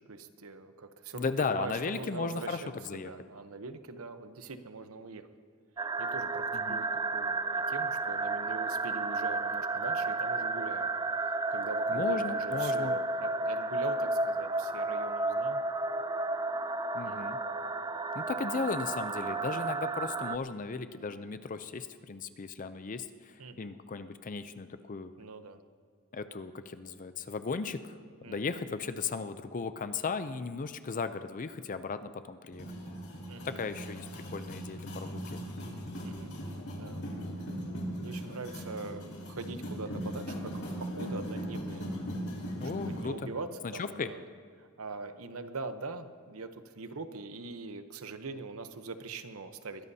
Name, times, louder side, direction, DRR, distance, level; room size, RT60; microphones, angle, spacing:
voice 1, 0.0-5.3 5.8-10.9 11.5-15.6 17.0-17.3 23.4-23.7 25.2-25.6 28.2-28.5 33.3-33.6 36.0-36.3 36.8-37.0 38.0-41.9 42.7-44.2 44.6-49.9, right 3 dB, 75° right, 9 dB, 0.9 m, -42 dB
voice 2, 1.1-3.1 6.5-6.8 11.9-12.9 16.9-17.4 18.1-25.1 26.1-28.0 28.3-32.7 33.4-35.4 42.6-43.3 43.6-44.1, left 4 dB, 40° left, 11 dB, 0.5 m, -36 dB
sound 1, 5.8-20.4, right 3 dB, 20° right, 0.3 m, -32 dB
sound 2, 32.5-43.0, equal, 80° left, 3.8 m, -39 dB
22.0 x 16.0 x 2.8 m, 2.1 s
head